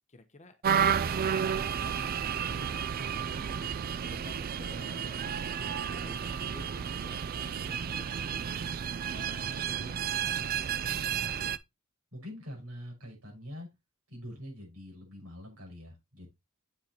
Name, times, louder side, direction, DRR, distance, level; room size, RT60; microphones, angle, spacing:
voice 1, 0.1-0.6 0.9-1.5 1.8-2.1 2.5-3.6 4.0-8.7 9.1-11.0, left 2 dB, 35° left, 0.9 m, -52 dB
sound 1, 0.6-11.6, right 7 dB, 45° right, 0.4 m, -32 dB
voice 2, 12.1-13.7 14.1-16.3, equal, 70° right, 5.8 m, -44 dB
8.3 x 6.3 x 2.9 m
head